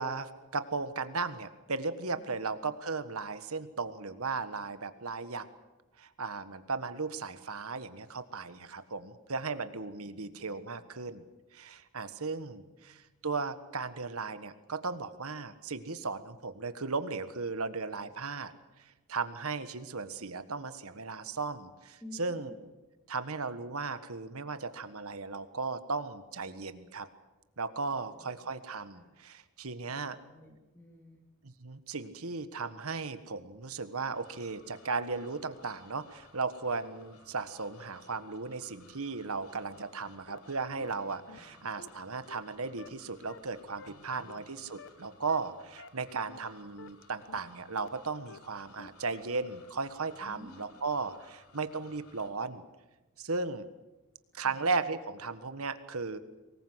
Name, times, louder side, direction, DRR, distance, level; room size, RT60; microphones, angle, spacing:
voice 1, 0.0-5.5 6.0-11.2 11.5-18.5 18.8-22.5 23.1-27.1 27.6-30.2 31.6-52.6 53.2-53.7 54.3-56.2, right 4 dB, 70° right, 11 dB, 1.5 m, -36 dB
voice 2, 12.5-13.0 22.0-22.7 27.9-28.5 28.9-29.1 29.9-31.2 41.2-41.5 43.8-44.5 50.2-50.8 54.3-54.7, left 1 dB, 10° left, 0 dB, 2.9 m, -54 dB
sound 1, 34.1-52.3, left 3 dB, 80° left, 3.1 m, -60 dB
sound 2, 40.3-40.4 40.8-40.9 41.3-41.4 41.8-41.9 42.3-42.4 42.8-42.9 43.3-43.4 43.8-43.9 44.3-44.4 44.8-44.9 45.3-45.4 45.8-45.9 46.3-46.4 46.8-46.9 47.3-47.4 47.8-47.9 48.3-48.4 48.8-48.9 49.3-49.4, left 4 dB, 60° left, 1.0 m, -49 dB
24.0 x 20.0 x 8.1 m, 1.1 s
head